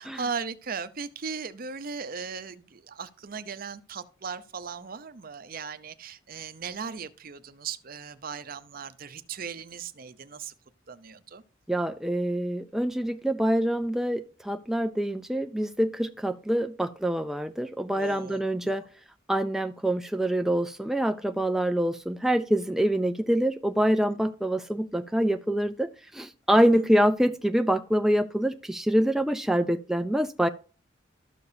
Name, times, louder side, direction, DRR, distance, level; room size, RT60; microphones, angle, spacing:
voice 1, 0.0-10.5 10.9-11.4 17.9-18.7 26.5-26.9, right 5 dB, 50° right, 0.6 m, -38 dB
voice 2, 11.7-18.8 19.3-30.5, right 1 dB, ahead, 0.3 m, -25 dB
13.0 x 6.7 x 2.7 m
head